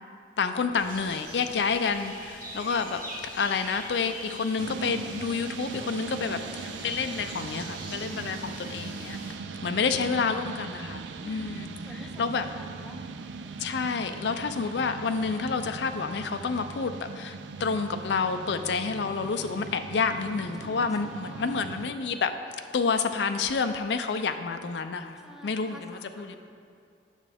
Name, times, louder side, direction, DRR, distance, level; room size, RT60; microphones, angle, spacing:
voice 1, 0.4-3.0 3.3-9.2 9.6-11.7 12.2-12.5 13.6-22.4 22.7-26.4, left 5 dB, 70° left, 8 dB, 0.4 m, -29 dB
sound 1, 0.8-9.3, right 1 dB, 50° right, 1.5 m, -44 dB
sound 2, 4.6-21.9, right 4 dB, 80° right, 0.4 m, -40 dB
voice 2, 6.2-6.8 7.2-8.6 9.8-10.4 10.7-11.5 11.8-13.0 20.5-21.6 25.2-26.4, equal, 5° right, 2 dB, 0.6 m, -49 dB
9.8 x 7.1 x 3.5 m, 2.4 s
head